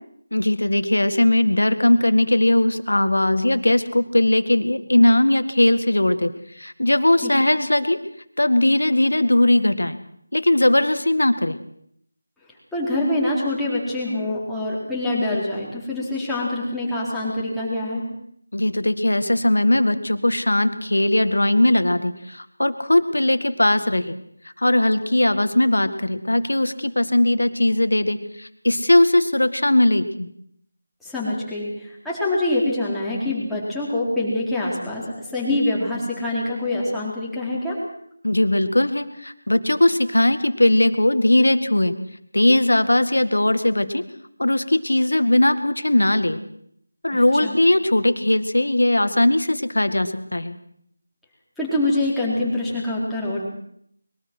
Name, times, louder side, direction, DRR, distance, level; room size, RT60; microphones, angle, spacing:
voice 1, 0.3-8.0 8.4-10.0 10.3-11.6 18.5-24.1 24.6-30.3 38.2-41.9 42.3-44.0 44.4-46.4 47.0-50.6, left 1 dB, 75° left, 11 dB, 1.9 m, -19 dB
voice 2, 12.7-18.1 31.0-37.8 47.1-47.6 51.6-53.4, left 1 dB, ahead, -8 dB, 4.2 m, -25 dB
23.0 x 22.0 x 6.3 m, 0.70 s
figure-of-eight pair, 165°, 0 cm